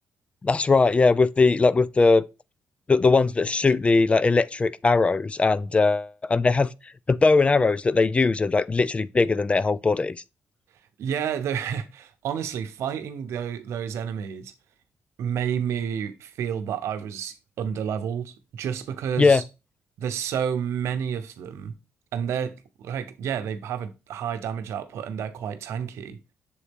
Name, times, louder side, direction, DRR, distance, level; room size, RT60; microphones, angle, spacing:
voice 1, 0.4-2.2 2.9-6.7 7.1-10.2 19.2-19.4, left 3 dB, 25° left, 0.3 m, -20 dB
voice 2, 11.0-14.5 15.2-19.4 20.0-21.7 22.1-26.2, right 8 dB, 80° right, 0.7 m, -30 dB
7.0 x 4.0 x 3.5 m
cardioid pair, 80°, 5 cm